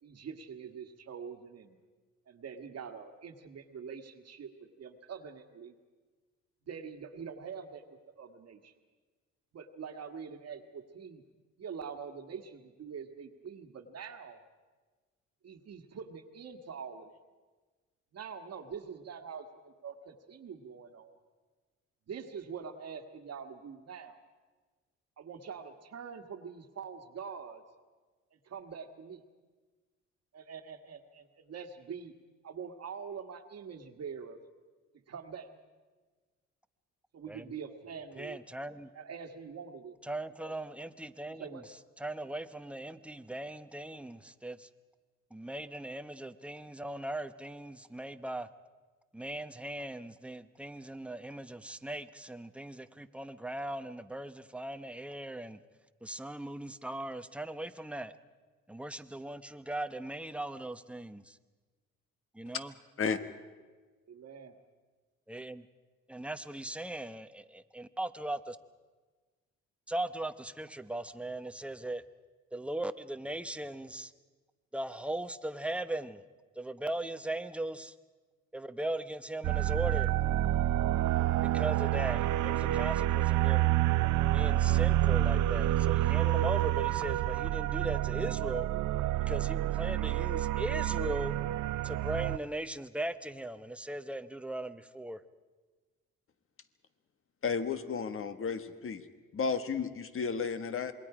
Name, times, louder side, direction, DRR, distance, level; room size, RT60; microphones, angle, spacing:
voice 1, 0.0-1.8 2.3-5.7 6.6-8.7 9.5-11.2 11.6-14.4 15.4-17.2 18.1-21.2 22.1-24.2 25.2-27.6 28.3-29.2 30.3-32.1 32.4-34.4 35.1-35.5 37.1-38.4 38.9-40.0 40.4-40.5 41.4-41.6 64.0-64.5, right 6 dB, 55° right, 6 dB, 1.7 m, -44 dB
voice 2, 38.2-38.9 40.0-41.6 42.0-44.7 45.3-48.5 49.1-55.6 56.0-58.1 58.7-61.4 62.3-62.7 65.3-65.7 66.1-68.6 69.9-72.0 72.5-74.1 74.7-76.2 76.6-77.9 78.5-80.1 81.5-83.7 84.3-88.7 89.3-91.4 91.8-95.2, right 1 dB, 5° right, 10 dB, 0.9 m, -39 dB
sound 1, 79.4-92.4, right 14 dB, 80° right, 0.6 m, -28 dB
voice 3, 97.4-99.0 99.3-100.9, left 5 dB, 45° left, 10 dB, 1.5 m, -33 dB
27.0 x 22.0 x 5.0 m, 1.3 s
cardioid pair, 90°, 30 cm